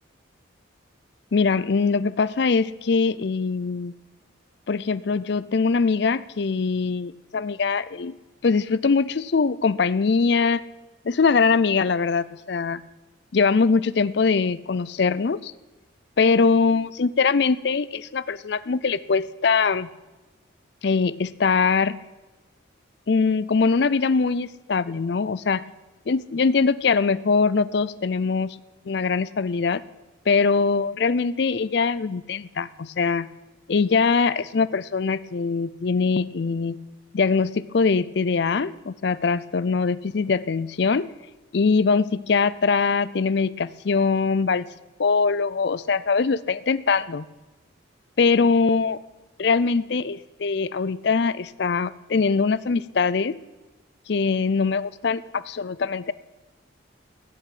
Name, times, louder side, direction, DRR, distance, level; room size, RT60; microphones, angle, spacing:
voice 1, 1.3-3.9 4.7-8.1 8.4-10.6 11.0-12.8 13.3-15.5 16.2-19.9 20.8-22.0 23.1-25.6 26.1-28.6 28.9-29.8 30.3-33.3 33.7-36.8 37.1-41.1 41.5-44.7 45.0-47.3 48.2-49.0 49.4-53.4 54.1-56.1, left 4 dB, 55° left, 18 dB, 0.5 m, -22 dB
15.5 x 7.1 x 9.2 m, 1.2 s
head